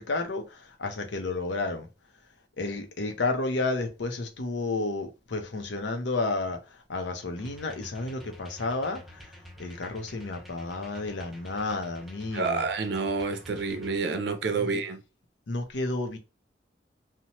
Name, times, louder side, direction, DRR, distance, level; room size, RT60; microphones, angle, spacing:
voice 1, 0.0-1.9 2.6-6.6 6.9-9.2 9.6-12.7 14.6-14.7 15.5-16.2, left 3 dB, 85° left, 0.7 m, -31 dB
sound 1, 7.4-14.0, equal, ahead, 0.4 m, -48 dB
voice 2, 12.3-15.0, right 4 dB, 70° right, 0.5 m, -28 dB
2.8 x 2.1 x 2.9 m
head